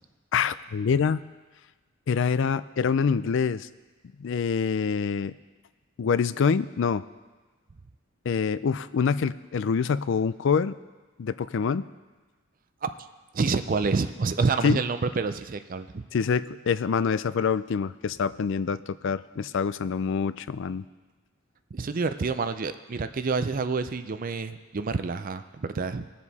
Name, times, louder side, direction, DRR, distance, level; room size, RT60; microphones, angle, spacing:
voice 1, 0.3-1.2 2.1-3.7 4.2-5.4 6.0-7.0 8.3-10.8 11.2-11.9 14.6-14.8 16.1-20.9, left 6 dB, 60° left, 15 dB, 0.4 m, -25 dB
voice 2, 13.3-16.0 21.7-26.1, right 4 dB, 40° right, 11 dB, 0.4 m, -28 dB
20.0 x 7.4 x 4.1 m, 1.3 s
head